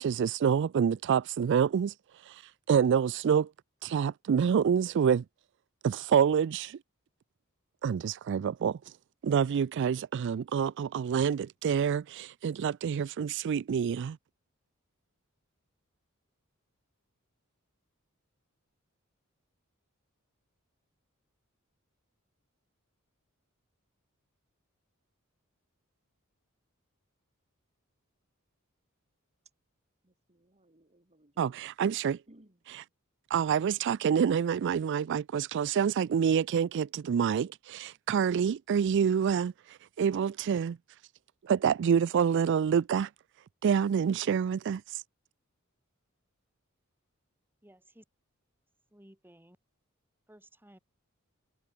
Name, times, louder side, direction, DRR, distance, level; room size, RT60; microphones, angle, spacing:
voice 1, 0.0-1.9 2.2-3.5 3.8-5.2 5.8-6.8 7.8-8.8 9.2-14.2 31.4-32.2 32.7-32.8 33.3-40.8 41.4-43.1 43.6-45.0, right 7 dB, 55° right, 0.3 m, -27 dB
voice 2, 30.0-31.7 32.3-32.6, right 1 dB, 30° right, 3.0 m, -62 dB
voice 3, 47.6-48.0 48.9-49.6 50.3-50.8, right 1 dB, 10° right, 4.9 m, -56 dB
head